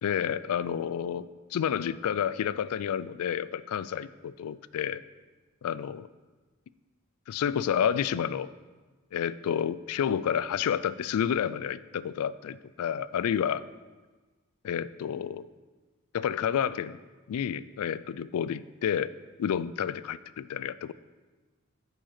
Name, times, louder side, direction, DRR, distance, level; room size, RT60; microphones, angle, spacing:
voice 1, 0.0-5.0 5.6-6.1 7.3-8.5 9.1-13.6 14.6-15.5 16.1-17.0 17.3-19.1 19.4-20.9, left 8 dB, 85° left, 16 dB, 0.3 m, -30 dB
8.7 x 5.0 x 5.9 m, 1.3 s
head